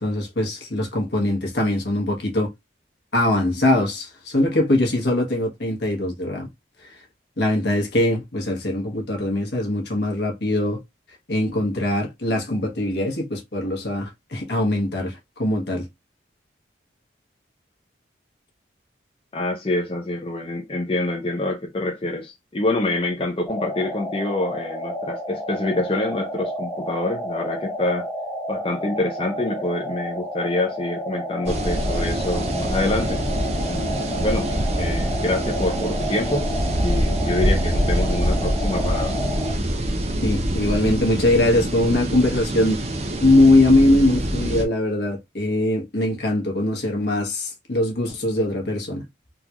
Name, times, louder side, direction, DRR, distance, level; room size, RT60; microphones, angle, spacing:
voice 1, 0.0-2.5 3.1-6.5 7.4-10.8 11.3-15.9 40.2-42.8 43.2-49.0, left 1 dB, 65° left, 1.3 m, -21 dB
voice 2, 19.3-28.1 28.5-33.2 33.6-34.5 34.8-36.5 36.8-39.2, left 2 dB, 30° left, 0.5 m, -26 dB
sound 1, 23.5-39.5, equal, 10° left, 1.0 m, -31 dB
sound 2, 31.5-44.7, right 1 dB, 35° right, 0.6 m, -25 dB
3.8 x 2.3 x 2.9 m
head